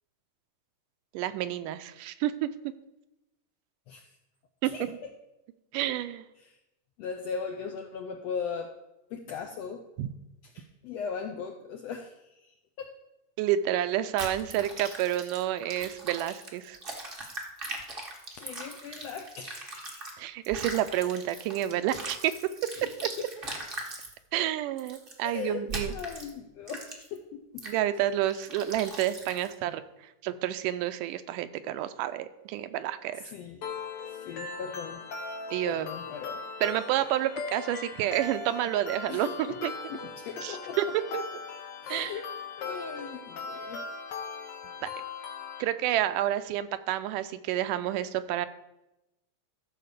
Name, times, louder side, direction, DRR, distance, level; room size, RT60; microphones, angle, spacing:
voice 1, 1.1-2.5 4.6-5.0 5.7-6.2 10.0-10.1 13.4-16.8 20.2-22.3 23.0-23.1 24.3-25.9 27.7-33.3 35.5-35.9 36.6-39.7 40.4-41.2 41.9-42.2 44.8-44.9 45.6-48.5, right 12 dB, 85° right, 11 dB, 2.2 m, -29 dB
voice 2, 3.9-4.2 4.6-5.1 6.4-6.6 7.0-8.7 9.1-9.9 10.4-12.9 18.4-20.1 22.8-22.9 23.2-23.3 25.2-27.7 33.1-33.6 34.0-35.0 35.6-36.4 39.1-39.6 39.9-40.9 41.8-42.2 42.6-43.9, left 6 dB, 80° left, 5 dB, 1.5 m, -39 dB
sound 1, 14.2-20.1 20.4-24.1 24.8-25.1 25.7-26.3 26.7-27.2 27.6-27.8 28.3-29.5, right 2 dB, 65° right, 0.5 m, -40 dB
sound 2, 33.6-45.6, left 4 dB, 60° left, 1.6 m, -39 dB
13.5 x 4.6 x 6.7 m, 0.94 s
omnidirectional pair, 3.7 m